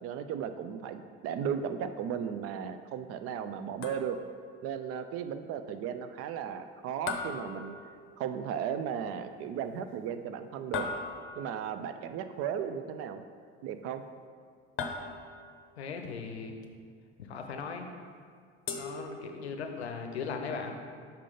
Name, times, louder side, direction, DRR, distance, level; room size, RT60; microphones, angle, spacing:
voice 1, 0.0-4.2 4.6-7.8 8.2-10.9 11.4-13.2 13.6-14.0, right 8 dB, 45° right, 9 dB, 0.5 m, -35 dB
sound 1, 3.8-4.4 7.1-8.3 10.7-11.6 14.8-15.6 18.7-19.7, left 4 dB, 40° left, 0.7 m, -38 dB
voice 2, 15.8-16.5 17.2-17.9 18.7-20.8, left 5 dB, 85° left, 4 dB, 0.6 m, -38 dB
5.7 x 3.7 x 5.0 m, 2.1 s
figure-of-eight pair, 60°, 32 cm